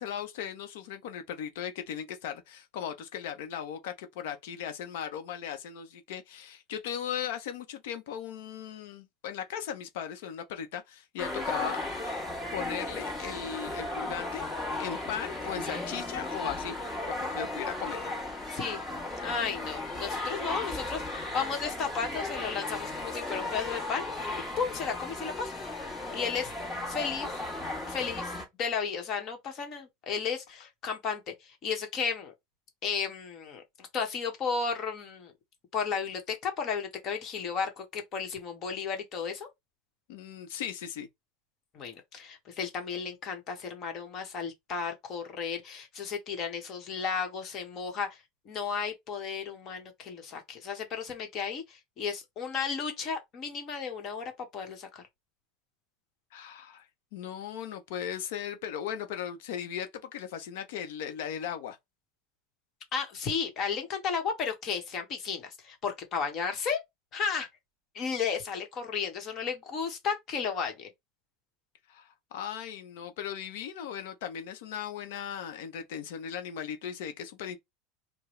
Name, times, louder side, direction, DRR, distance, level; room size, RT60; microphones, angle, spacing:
voice 1, 0.0-11.8 12.5-14.5 14.8-16.7 17.1-18.1 40.1-41.1 56.3-56.9 57.1-61.8 71.9-77.6, left 9 dB, 75° left, 0.8 m, -37 dB
sound 1, 11.2-28.4, left 2 dB, 15° left, 1.6 m, -35 dB
voice 2, 18.5-18.8 19.2-25.6 25.8-26.5 26.9-27.4 27.8-28.3 28.6-32.3 32.8-35.3 35.7-39.5 41.7-55.0 62.9-66.8 67.1-67.5 67.9-70.9, left 6 dB, 40° left, 1.2 m, -34 dB
4.7 x 2.2 x 3.2 m
supercardioid pair, 145°, 0 cm